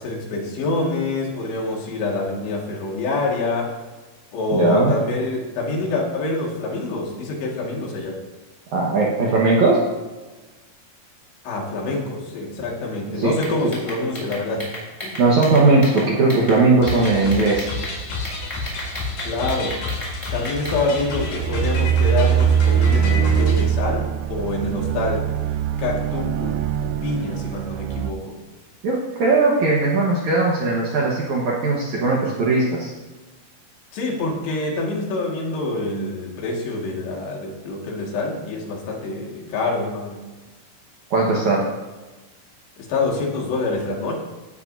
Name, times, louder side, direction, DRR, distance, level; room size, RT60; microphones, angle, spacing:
voice 1, 0.0-3.7 4.3-8.2 11.5-14.7 15.0-15.2 19.2-19.8 20.3-25.3 25.8-28.4 33.9-40.2 42.8-44.2, left 2 dB, 75° left, -1 dB, 4.1 m, -26 dB
voice 2, 4.5-4.9 8.7-9.8 13.2-13.3 13.6-13.7 15.2-17.7 28.8-32.9 41.1-41.6, right 3 dB, 60° right, -3 dB, 2.0 m, -18 dB
sound 1, 13.4-16.6 16.9-17.9 18.2-20.8, equal, 10° left, 3.6 m, -34 dB
sound 2, 16.8-23.7, left 3 dB, 55° left, 3.5 m, -30 dB
sound 3, 20.7-28.1, right 9 dB, 85° right, 2.3 m, -22 dB
17.0 x 11.0 x 2.7 m, 1.2 s
omnidirectional pair, 5.0 m